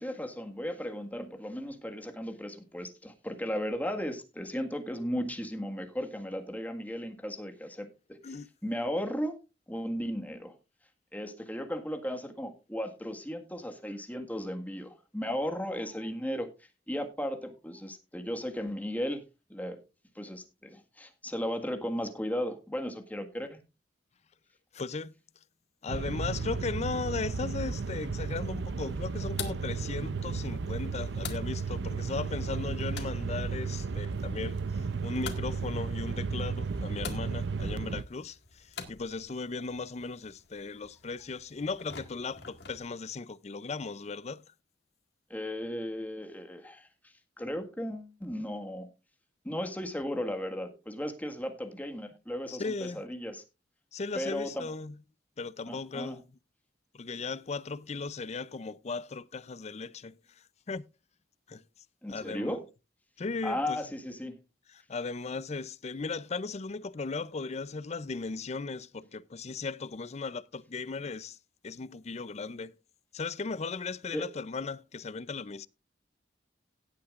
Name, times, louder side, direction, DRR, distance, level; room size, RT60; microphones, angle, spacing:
voice 1, 0.0-8.2 8.6-9.4 9.7-10.6 11.1-16.5 16.9-19.2 19.5-19.8 20.2-23.6 45.3-48.9 49.4-53.4 54.2-54.7 55.7-56.2 62.0-62.6 63.4-64.4 74.1-74.3, equal, 10° left, 1.7 m, -35 dB
voice 2, 24.7-25.1 25.8-44.4 52.5-53.0 53.9-55.0 55.4-56.2 56.9-60.8 61.5-61.6 62.1-62.6 63.2-63.8 64.7-71.4 71.6-72.8 73.1-75.7, left 4 dB, 40° left, 0.5 m, -37 dB
sound 1, 25.9-38.0, right 4 dB, 75° right, 0.6 m, -34 dB
sound 2, 27.7-42.9, left 6 dB, 65° left, 1.9 m, -48 dB
17.5 x 8.7 x 2.4 m
head